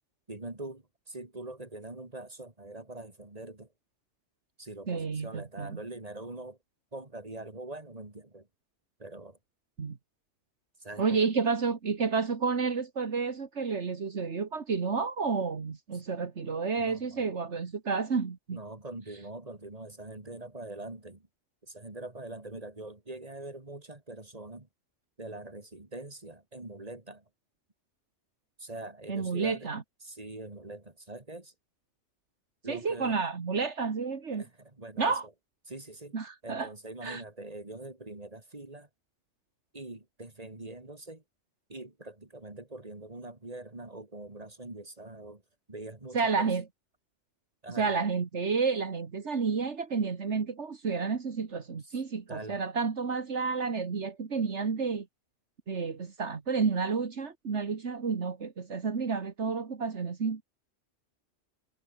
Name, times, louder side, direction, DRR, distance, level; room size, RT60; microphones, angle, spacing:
voice 1, 0.3-3.7 4.6-6.6 6.9-8.5 9.0-9.4 10.8-11.2 15.9-16.0 16.8-17.3 18.5-21.3 21.6-24.7 25.2-27.2 28.6-29.7 30.0-31.5 32.6-33.2 34.3-35.3 35.7-36.2 36.4-38.9 39.7-41.2 41.7-45.4 45.7-46.5 47.6-48.0 51.8-52.0 52.3-52.6, right 2 dB, 30° right, 2.7 m, -43 dB
voice 2, 4.9-5.8 9.8-10.0 11.0-18.6 29.1-29.8 32.7-34.5 35.0-35.3 36.1-36.7 37.0-37.2 46.1-46.6 47.8-55.1 55.7-60.4, right 5 dB, 70° right, 2.0 m, -30 dB
omnidirectional pair, 1.2 m